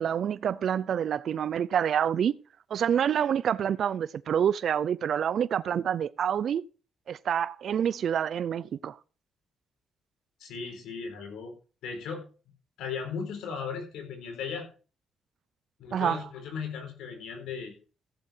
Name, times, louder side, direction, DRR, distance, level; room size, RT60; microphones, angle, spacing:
voice 1, 0.0-2.3 2.7-6.6 7.1-9.0 15.9-16.3, right 8 dB, 60° right, 0.5 m, -27 dB
voice 2, 10.4-11.5 11.8-12.2 12.8-14.7 15.8-17.7, left 6 dB, 80° left, 4.3 m, -36 dB
15.0 x 7.5 x 4.5 m
cardioid pair, 90°, 0 cm